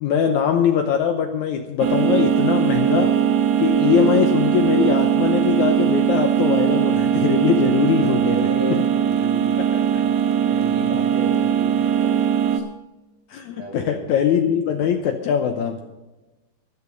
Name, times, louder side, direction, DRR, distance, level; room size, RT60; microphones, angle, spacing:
voice 1, 0.0-3.1 3.6-8.8 9.7-9.8 13.3-15.8, left 8 dB, 70° left, 5 dB, 1.9 m, -22 dB
sound 1, 1.8-12.6, right 9 dB, 80° right, 2.8 m, -20 dB
voice 2, 8.0-9.5 9.8-12.2 12.5-12.6 13.6-14.1, right 1 dB, 40° right, -1 dB, 3.5 m, -34 dB
13.5 x 11.5 x 5.2 m, 1.1 s
omnidirectional pair, 4.0 m